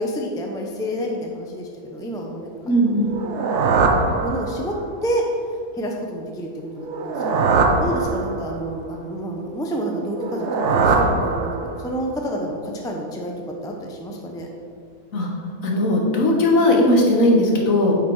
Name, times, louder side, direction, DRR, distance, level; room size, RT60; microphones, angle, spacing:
voice 1, 0.0-2.5 2.9-3.0 4.2-4.8 5.0-5.2 5.7-13.3 13.6-14.5, right 1 dB, 5° left, 0 dB, 0.6 m, -29 dB
voice 2, 2.6-3.1 15.1-15.3 15.6-17.9, left 1 dB, 65° left, 0 dB, 1.6 m, -18 dB
sound 1, 3.1-4.9 6.8-8.7 10.1-12.0, right 4 dB, 60° right, 0.9 m, -21 dB
8.7 x 5.0 x 4.8 m, 2.2 s
omnidirectional pair, 1.6 m